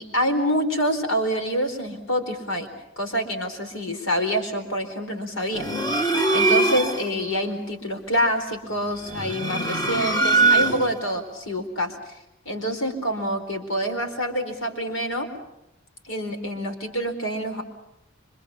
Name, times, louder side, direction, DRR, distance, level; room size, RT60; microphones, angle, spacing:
voice 1, 0.0-2.7 3.0-6.0 6.3-11.9 12.5-15.3 16.0-17.6, equal, 70° left, 5 dB, 4.5 m, -26 dB
sound 1, 5.5-7.1 9.0-11.1, right 2 dB, 20° left, 1.9 m, -22 dB
26.5 x 25.5 x 7.2 m, 0.86 s
head